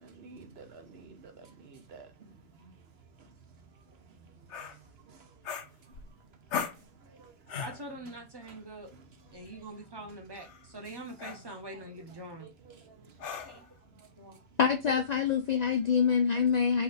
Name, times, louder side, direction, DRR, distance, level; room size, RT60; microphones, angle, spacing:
voice 1, 0.0-2.1 11.7-11.8 12.4-12.7, right 4 dB, 65° right, 1.0 m, -50 dB
sound 1, 4.5-4.8 5.4-6.1 6.5-6.8 7.5-7.8 9.3-9.5 10.3-10.6 11.2-11.5 13.2-13.7, left 7 dB, 85° left, 1.0 m, -37 dB
voice 2, 7.6-8.9 9.3-12.5 13.4-13.6 14.2-14.4, right 1 dB, 25° right, 0.9 m, -44 dB
voice 3, 14.6-16.8, left 6 dB, 60° left, 0.4 m, -26 dB
4.2 x 2.4 x 4.0 m
omnidirectional pair, 1.2 m